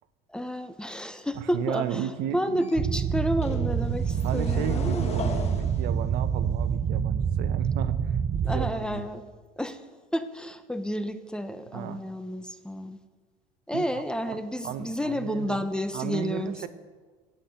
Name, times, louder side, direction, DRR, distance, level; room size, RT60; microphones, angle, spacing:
voice 1, 0.3-5.0 8.4-9.2 9.6-9.8 10.1-13.0 13.7-16.7, equal, 5° left, 10 dB, 0.8 m, -31 dB
voice 2, 1.3-2.6 4.2-9.0 11.7-12.0 13.7-15.7 15.9-16.7, right 10 dB, 65° right, 11 dB, 0.9 m, -34 dB
sound 1, 2.6-2.7 3.4-7.2, left 5 dB, 35° left, 1.6 m, -37 dB
sound 2, 2.8-8.7, right 7 dB, 30° right, 0.6 m, -27 dB
17.0 x 6.0 x 8.1 m, 1.4 s
supercardioid pair, 115°, 18 cm